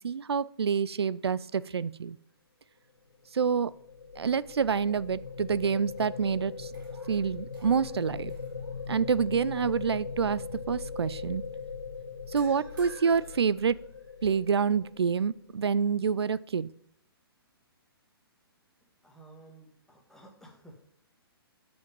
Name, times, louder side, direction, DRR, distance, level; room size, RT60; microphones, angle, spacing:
voice 1, 0.0-2.2 3.3-3.7 4.2-6.7 7.1-8.3 8.9-11.4 12.3-13.8 14.2-16.7, right 6 dB, 85° right, 20 dB, 0.4 m, -27 dB
sound 1, 3.2-15.4, left 5 dB, 90° left, 1.1 m, -40 dB
sound 2, 5.0-5.5 5.9-9.2 9.6-9.9 12.4-14.3, right 2 dB, 50° right, 3.1 m, -57 dB
voice 2, 19.0-20.9, right 2 dB, 5° left, 0 dB, 1.8 m, -53 dB
9.3 x 5.1 x 5.2 m, 0.67 s
figure-of-eight pair, 130°, 13 cm